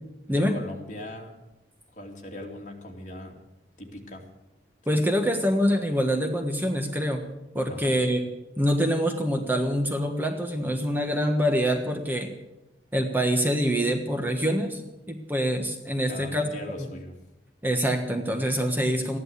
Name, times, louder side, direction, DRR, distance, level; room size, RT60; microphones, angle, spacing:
voice 1, 0.3-1.3 1.9-3.4 3.8-4.2 7.7-8.0 16.1-17.1, left 1 dB, 45° left, 1 dB, 2.7 m, -40 dB
voice 2, 4.9-7.2 7.5-8.2 8.6-12.3 12.9-14.8 15.1-16.4 17.6-19.2, equal, 10° right, 4 dB, 1.4 m, -25 dB
14.5 x 11.0 x 8.3 m, 0.97 s
head